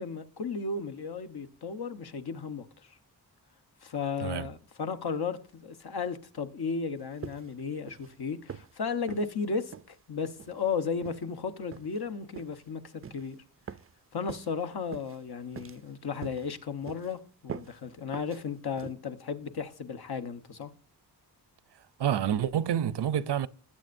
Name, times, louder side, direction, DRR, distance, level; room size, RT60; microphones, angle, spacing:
voice 1, 0.0-3.0 3.8-13.4 14.1-20.7, left 5 dB, 70° left, 1.2 m, -34 dB
sound 1, 7.2-7.6 7.9-8.1 8.5-8.7 9.1-9.3 9.7-9.9 10.4-10.6 11.0-11.2 11.7-12.0 12.4-12.6 13.0-13.3 13.7-13.9 14.3-14.5 14.9-15.2 15.6-15.9 16.2-16.5 16.9-17.1 17.5-17.8 18.1-18.4 18.8-19.0, right 7 dB, 35° right, 0.4 m, -43 dB
voice 2, 22.0-23.5, right 9 dB, 90° right, 0.7 m, -28 dB
19.5 x 8.6 x 2.6 m
wide cardioid pair, 165°, 40 cm